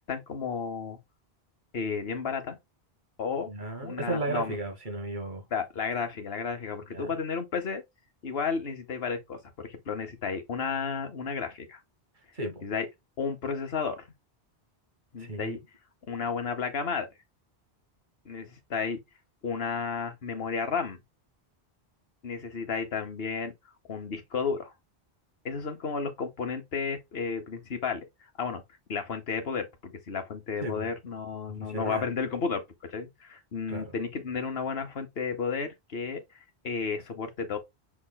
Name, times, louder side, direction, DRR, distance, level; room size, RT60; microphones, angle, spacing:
voice 1, 0.1-1.0 1.7-2.6 3.2-3.5 3.8-4.5 5.5-7.8 8.2-11.8 12.6-12.9 13.2-14.1 15.1-15.6 16.1-17.1 18.2-19.0 19.4-21.0 22.2-23.5 23.9-24.7 25.4-28.1 28.4-28.6 28.9-32.6 32.9-36.2 36.6-37.6, left 5 dB, 65° left, 1.3 m, -32 dB
voice 2, 3.4-5.4 6.9-7.2 12.3-12.6 15.2-15.6 30.6-30.9 31.5-32.1 33.7-33.9, right 2 dB, 50° right, 1.5 m, -34 dB
5.7 x 3.6 x 2.2 m
omnidirectional pair, 1.1 m